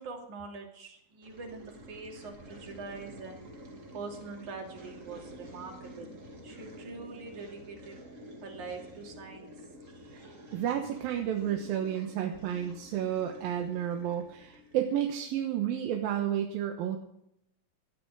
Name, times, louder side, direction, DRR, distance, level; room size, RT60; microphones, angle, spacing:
voice 1, 0.0-3.4 3.9-6.1 6.4-8.0 8.4-9.6, right 4 dB, 60° right, 1 dB, 4.0 m, -43 dB
sound 1, 1.2-15.1, equal, 25° right, 2.0 m, -49 dB
voice 2, 10.5-17.0, right 10 dB, 90° right, 3 dB, 3.0 m, -31 dB
18.0 x 13.5 x 5.0 m, 0.76 s
omnidirectional pair, 4.1 m